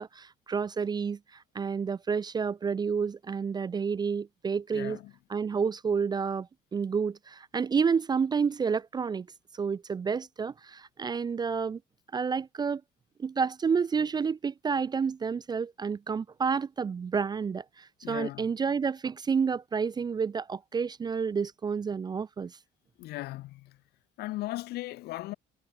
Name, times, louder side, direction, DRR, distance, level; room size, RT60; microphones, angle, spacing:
voice 1, 0.0-5.0 5.3-9.3 9.5-11.8 12.1-12.8 13.2-22.5, right 6 dB, 25° right, 0.4 m, -30 dB
voice 2, 4.7-5.1 18.0-18.5 23.0-23.8 24.2-25.3, left 18 dB, 75° left, 0.5 m, -37 dB
cardioid pair, 110°, 17 cm